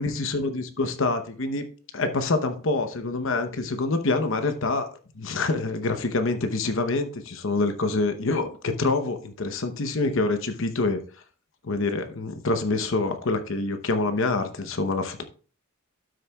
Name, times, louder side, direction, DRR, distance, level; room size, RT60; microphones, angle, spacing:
voice 1, 0.0-1.7 1.9-11.0 11.6-15.2, left 3 dB, 60° left, 0.8 m, -26 dB
12.5 x 6.5 x 2.3 m
head